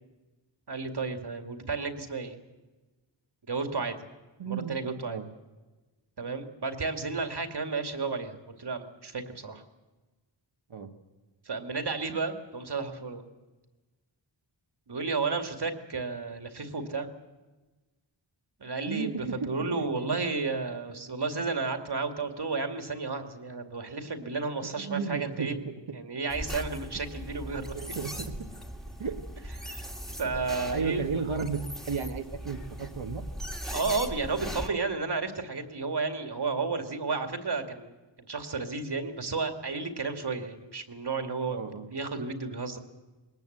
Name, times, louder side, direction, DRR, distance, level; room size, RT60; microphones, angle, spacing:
voice 1, 0.7-2.4 3.5-4.0 4.4-5.2 6.2-9.6 11.5-13.2 14.9-17.1 18.6-25.6 25.9-27.9 29.6-29.9 30.2-31.0 33.7-41.6 41.9-42.8, right 4 dB, 55° right, 6 dB, 2.3 m, -32 dB
voice 2, 4.4-4.8 5.1-5.3 10.7-10.9 18.8-20.1 24.6-25.8 27.7-28.5 29.0-29.2 30.7-31.6 31.9-33.2 41.5-41.9, right 5 dB, 85° right, 3 dB, 1.8 m, -34 dB
sound 1, 26.3-34.7, equal, ahead, 2.1 m, -39 dB
21.0 x 19.0 x 8.0 m, 1.2 s
wide cardioid pair, 90°, 47 cm